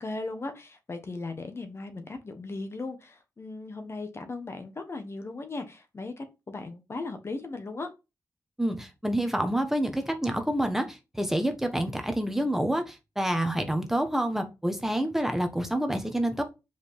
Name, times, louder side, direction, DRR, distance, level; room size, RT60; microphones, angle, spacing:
voice 1, 0.0-7.9, left 3 dB, 35° left, 7 dB, 1.5 m, -37 dB
voice 2, 8.6-16.4, right 1 dB, 5° right, 5 dB, 1.3 m, -28 dB
5.2 x 5.0 x 5.7 m, 0.26 s
wide cardioid pair, 100°, 7 cm